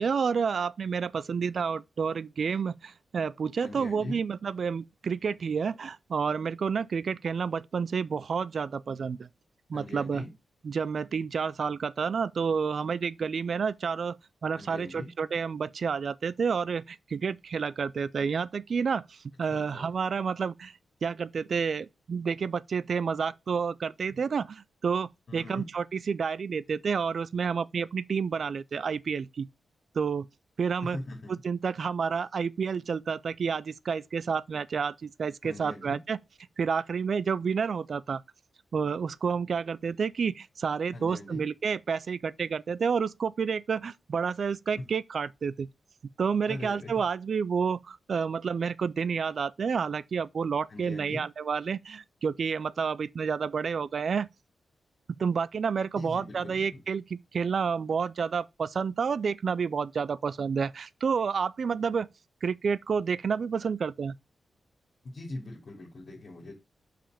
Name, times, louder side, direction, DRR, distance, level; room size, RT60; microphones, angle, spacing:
voice 1, 0.0-9.3 9.7-10.2 10.6-14.2 14.4-20.7 21.0-29.5 30.0-30.3 30.6-31.0 31.3-36.2 36.6-38.2 38.7-45.7 46.2-54.3 55.2-62.1 62.4-64.1, right 6 dB, 55° right, 0.4 m, -30 dB
voice 2, 3.6-4.2 9.7-10.3 14.6-15.1 19.5-19.9 25.3-25.7 30.8-31.3 35.4-36.0 40.9-41.4 46.5-46.9 50.7-51.2 56.0-56.8 65.0-66.5, left 2 dB, 50° left, 2.5 m, -41 dB
5.8 x 4.9 x 5.0 m
wide cardioid pair, 120°, 0 cm